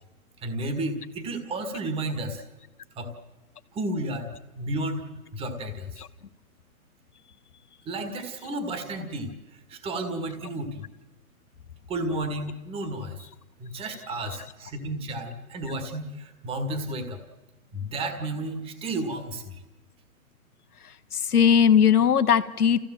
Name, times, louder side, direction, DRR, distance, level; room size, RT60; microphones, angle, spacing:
voice 1, 0.4-2.4 3.0-3.1 3.7-4.3 4.6-6.0 7.9-9.3 9.7-10.9 11.9-13.2 13.6-17.2 17.7-19.6, right 1 dB, 15° right, 7 dB, 1.7 m, -32 dB
voice 2, 20.8-22.8, left 8 dB, 90° left, 9 dB, 1.5 m, -20 dB
29.0 x 15.5 x 7.6 m, 1.2 s
hypercardioid pair, 150°, 44 cm